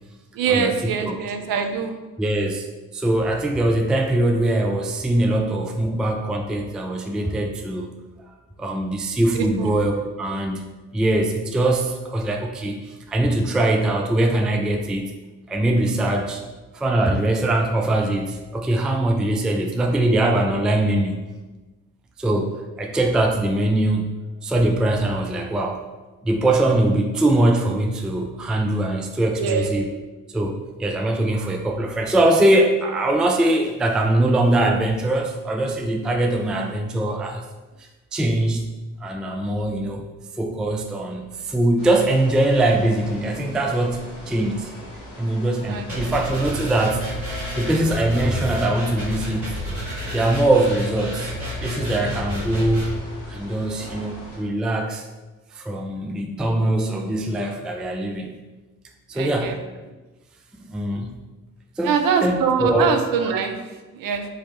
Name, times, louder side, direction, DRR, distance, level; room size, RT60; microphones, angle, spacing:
voice 1, 0.3-2.0 9.3-9.7 29.3-29.9 45.6-46.1 59.1-59.6 61.8-64.3, right 6 dB, 55° right, 5 dB, 0.6 m, -24 dB
voice 2, 2.2-2.7 2.9-7.9 8.6-15.1 15.5-16.4 16.7-21.3 22.2-24.2 24.4-25.9 26.2-29.9 30.3-37.4 37.8-38.7 39.0-40.0 40.4-44.7 45.2-47.1 47.6-49.5 50.1-51.3 51.6-53.0 53.3-55.1 55.5-58.4 59.1-59.6 60.5-61.2 61.8-62.9, right 1 dB, ahead, 2 dB, 0.4 m, -22 dB
sound 1, 41.8-54.4, left 1 dB, 70° left, 1.0 m, -41 dB
sound 2, 45.9-52.9, equal, 90° right, 1.3 m, -30 dB
4.7 x 2.9 x 3.1 m, 1.2 s
figure-of-eight pair, 40°, 42 cm